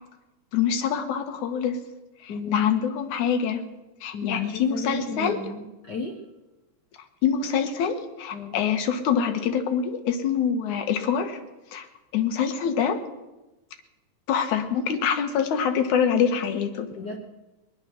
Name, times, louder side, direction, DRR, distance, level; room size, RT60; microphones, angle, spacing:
voice 1, 0.5-1.8 2.2-3.6 4.0-5.4 7.2-11.4 11.7-11.9 12.1-13.0 14.3-16.9, left 7 dB, 90° left, 6 dB, 2.6 m, -25 dB
voice 2, 2.3-2.7 4.1-6.2 8.3-8.6 16.9-17.2, left 2 dB, 60° left, 3 dB, 1.1 m, -34 dB
20.0 x 10.5 x 6.3 m, 1.1 s
omnidirectional pair, 3.4 m